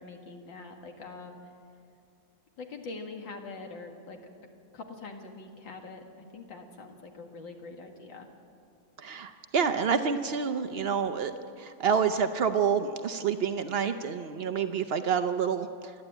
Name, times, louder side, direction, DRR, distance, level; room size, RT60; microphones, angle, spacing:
voice 1, 0.0-1.3 2.6-4.2 4.7-8.3, left 3 dB, 85° left, 3 dB, 2.6 m, -44 dB
voice 2, 9.0-11.3 11.6-15.7, right 6 dB, 85° right, 8 dB, 0.5 m, -28 dB
27.5 x 11.0 x 9.0 m, 2.6 s
omnidirectional pair, 2.0 m